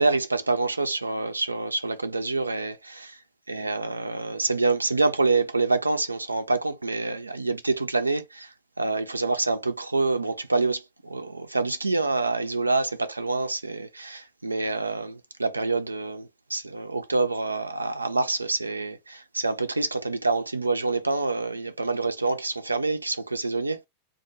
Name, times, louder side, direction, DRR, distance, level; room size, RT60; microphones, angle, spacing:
voice 1, 0.0-3.2 3.5-8.5 8.8-23.9, right 3 dB, 80° right, 0.4 m, -26 dB
2.1 x 2.1 x 2.9 m
figure-of-eight pair, 90°, 0 cm